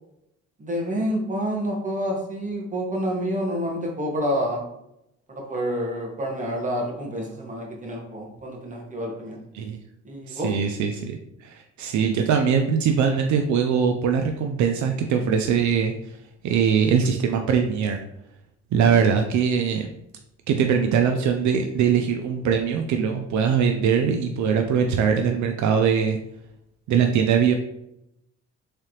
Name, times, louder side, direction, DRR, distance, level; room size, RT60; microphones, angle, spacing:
voice 1, 0.6-4.6 5.3-9.4 10.0-10.5, equal, 25° right, 0 dB, 1.1 m, -28 dB
voice 2, 10.3-16.2 16.4-18.0 18.7-19.9 20.5-26.2 26.9-27.5, right 7 dB, 70° right, 4 dB, 0.5 m, -22 dB
3.7 x 3.3 x 2.9 m, 0.82 s
cardioid pair, 90°, 30 cm